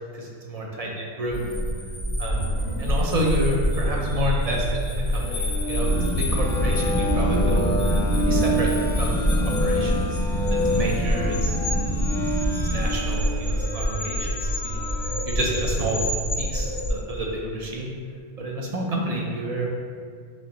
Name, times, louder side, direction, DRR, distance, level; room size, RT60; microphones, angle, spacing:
voice 1, 0.1-0.9 1.2-1.4 2.2-2.5 2.8-7.6 8.2-8.7 9.0-10.2 10.5-11.6 12.7-16.0 16.4-17.9 18.4-19.7, right 1 dB, 50° right, -2 dB, 0.5 m, -29 dB
sound 1, 1.3-16.9, equal, 80° left, 1.3 m, -26 dB
sound 2, 5.1-15.3, equal, 55° left, 0.8 m, -30 dB
sound 3, 5.8-12.8, equal, 75° right, 1.1 m, -27 dB
5.0 x 3.0 x 2.9 m, 2.1 s
omnidirectional pair, 1.2 m